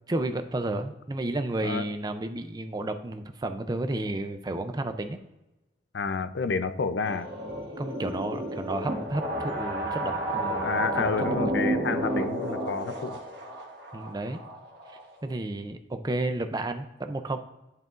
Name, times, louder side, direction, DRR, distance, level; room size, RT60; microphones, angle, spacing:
voice 1, 0.1-5.2 7.8-11.5 13.9-14.4 14.9-17.4, right 2 dB, 25° right, 8 dB, 0.4 m, -32 dB
voice 2, 5.9-7.3 10.6-13.2, left 4 dB, 80° left, 11 dB, 0.5 m, -30 dB
sound 1, 7.0-15.3, right 1 dB, 65° right, 1.6 m, -31 dB
10.5 x 4.7 x 2.5 m, 0.99 s
head